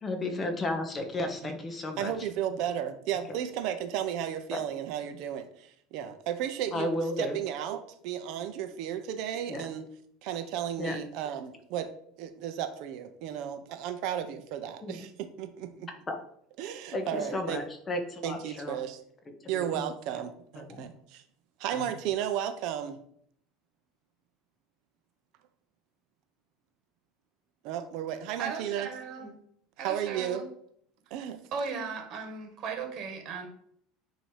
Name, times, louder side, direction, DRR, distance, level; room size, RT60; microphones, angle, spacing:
voice 1, 0.0-2.1 4.5-4.6 6.7-7.4 9.5-9.7 10.8-11.0 14.8-15.0 16.1-16.2 16.9-18.8 19.5-19.8 20.6-20.8 21.7-21.9, left 1 dB, 20° left, 4 dB, 1.2 m, -33 dB
voice 2, 2.0-9.9 10.2-11.9 12.2-15.9 16.6-17.6 18.2-19.0 19.5-21.2 21.6-23.0 27.6-28.9 29.8-30.4 31.1-31.4, right 10 dB, 60° right, 8 dB, 0.9 m, -34 dB
voice 3, 28.4-29.4 29.8-30.5 31.5-33.5, right 5 dB, 45° right, 3 dB, 1.5 m, -37 dB
8.9 x 3.0 x 5.1 m, 0.67 s
supercardioid pair, 135°, 0 cm